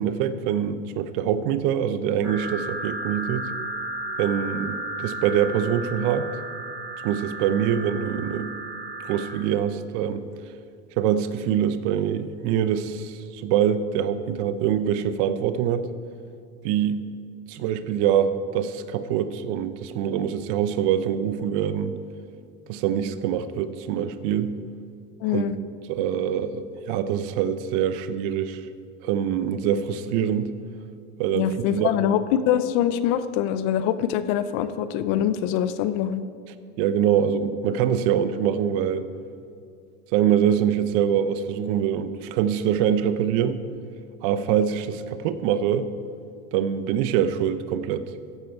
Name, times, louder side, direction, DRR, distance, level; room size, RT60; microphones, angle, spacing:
voice 1, 0.0-3.5 4.2-6.3 7.0-8.5 9.0-10.3 11.0-15.9 16.6-17.1 17.5-22.0 22.7-24.6 25.3-25.4 25.9-28.7 29.0-30.5 31.2-32.2 36.8-39.1 40.1-43.6 44.2-45.9 46.5-48.0, right 9 dB, 55° right, 12 dB, 0.8 m, -24 dB
sound 1, 2.2-9.3, right 2 dB, 5° right, 3.7 m, -34 dB
voice 2, 25.2-25.6 31.3-36.2, left 10 dB, 55° left, 13 dB, 0.8 m, -24 dB
14.5 x 10.5 x 4.6 m, 2.4 s
supercardioid pair, 130°, 32 cm